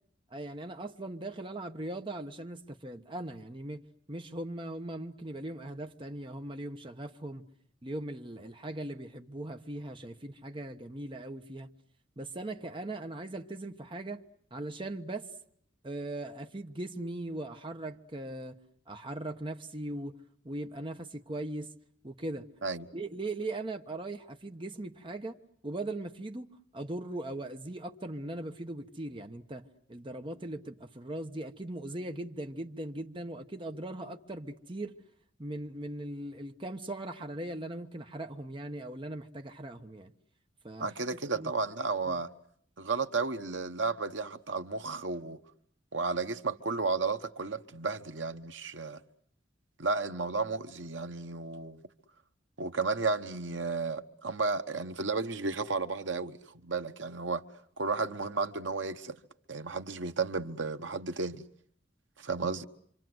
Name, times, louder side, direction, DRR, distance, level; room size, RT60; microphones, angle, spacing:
voice 1, 0.3-7.5 7.8-11.7 12.2-14.2 14.5-15.3 15.8-18.6 18.9-20.2 20.4-21.7 22.0-22.5 22.9-35.0 35.4-40.1 40.6-40.9 41.3-41.5 42.1-42.2 62.4-62.5, right 1 dB, 25° right, 1.2 m, -39 dB
voice 2, 40.8-42.3 42.8-45.4 45.9-49.0 49.8-51.8 52.6-57.4 57.8-59.2 59.5-61.4 62.2-62.6, right 4 dB, 75° right, 1.2 m, -33 dB
26.5 x 26.5 x 7.9 m
head